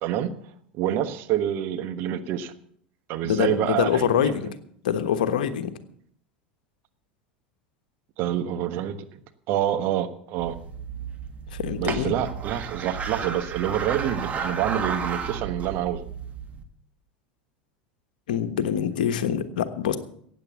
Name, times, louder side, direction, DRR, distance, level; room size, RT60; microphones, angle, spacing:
voice 1, 0.0-0.3 0.7-2.5 3.1-4.5 8.2-9.2 9.5-10.6 11.8-16.0, right 11 dB, 50° right, 9 dB, 1.2 m, -27 dB
voice 2, 3.2-4.5 4.8-5.7 11.5-12.1 18.3-20.0, left 8 dB, 65° left, 10 dB, 1.2 m, -25 dB
sound 1, 10.4-16.6, right 6 dB, 30° right, 1.8 m, -33 dB
15.5 x 9.0 x 7.0 m, 0.66 s
figure-of-eight pair, 80°, 5 cm